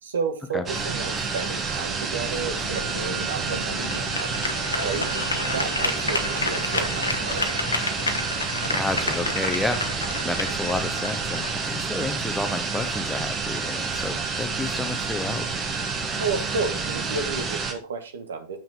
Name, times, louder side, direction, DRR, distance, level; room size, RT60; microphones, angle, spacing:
voice 1, 0.0-7.7 16.2-18.6, right 4 dB, 65° right, 6 dB, 1.4 m, -32 dB
sound 1, 0.7-17.7, right 4 dB, 25° right, 1.6 m, -29 dB
sound 2, 2.2-12.3, left 2 dB, 80° left, 1.0 m, -31 dB
voice 2, 8.7-9.8 10.2-15.5, left 2 dB, 5° left, 7 dB, 0.9 m, -30 dB
7.4 x 5.8 x 4.9 m, 0.36 s
figure-of-eight pair, 90°, 0 cm